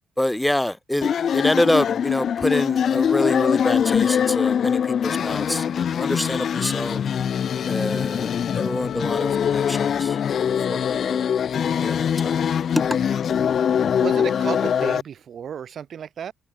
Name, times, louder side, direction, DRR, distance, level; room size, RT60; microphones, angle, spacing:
voice 1, 0.2-7.0 7.7-10.8 11.1-11.2 11.8-12.4 12.8-12.9, left 1 dB, 5° left, 1.1 m, -26 dB
sound 1, 1.0-15.0, left 8 dB, 55° left, 1.5 m, -23 dB
Wind instrument woodwind instrument, 7.3-11.6, left 11 dB, 70° left, 6.9 m, -38 dB
voice 2, 14.0-16.3, right 8 dB, 60° right, 3.8 m, -33 dB
cardioid pair, 90°, 0 cm